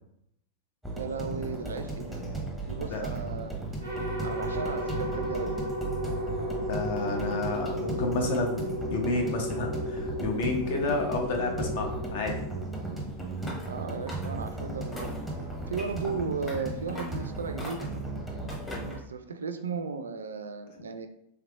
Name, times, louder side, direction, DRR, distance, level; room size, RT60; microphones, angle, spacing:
sound 1, 0.8-18.9, right 2 dB, ahead, 0.9 m, -36 dB
voice 1, 0.9-2.2 2.7-3.5 4.2-5.6 13.7-15.2 15.7-17.9 18.9-21.1, right 5 dB, 70° right, 9 dB, 0.3 m, -35 dB
sound 2, 3.8-13.1, equal, 90° left, 1.3 m, -34 dB
voice 2, 6.6-12.3, left 3 dB, 55° left, 3 dB, 0.7 m, -31 dB
sound 3, 13.4-13.7 14.1-14.5 14.9-15.3 15.8-16.1 16.5-16.6 16.9-17.2 17.6-18.0 18.5-19.0, left 1 dB, 20° left, 1.3 m, -41 dB
3.4 x 3.3 x 2.3 m, 0.77 s
figure-of-eight pair, 90°, 0 cm